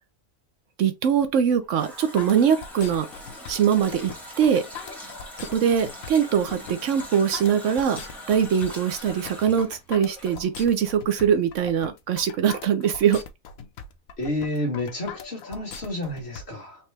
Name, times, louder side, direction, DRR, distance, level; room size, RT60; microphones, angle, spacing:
voice 1, 0.8-3.1 3.5-4.1 4.4-4.6 5.4-8.0 8.3-13.2, right 8 dB, 70° right, 1.0 m, -22 dB
Water tap faucet, 1.6-10.9 11.2-11.3, equal, ahead, 1.6 m, -42 dB
sound 1, 2.2-16.4, left 6 dB, 85° left, 1.2 m, -40 dB
voice 2, 14.2-16.8, left 1 dB, 50° left, 1.8 m, -30 dB
4.4 x 3.0 x 3.3 m
omnidirectional pair, 1.4 m